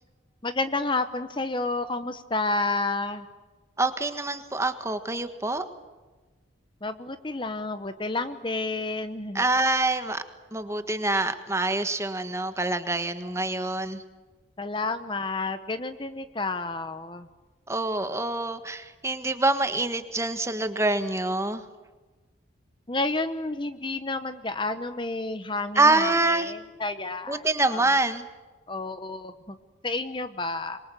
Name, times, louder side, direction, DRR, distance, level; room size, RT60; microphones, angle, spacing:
voice 1, 0.4-3.3 6.8-9.5 14.6-17.3 22.9-27.9 28.7-29.6 29.8-30.8, left 3 dB, 25° left, 10 dB, 1.0 m, -30 dB
voice 2, 3.8-5.6 9.3-10.2 10.5-14.0 17.7-21.6 25.7-26.5 27.3-28.2, right 2 dB, 15° right, 9 dB, 1.5 m, -25 dB
27.0 x 23.0 x 9.2 m, 1.3 s
head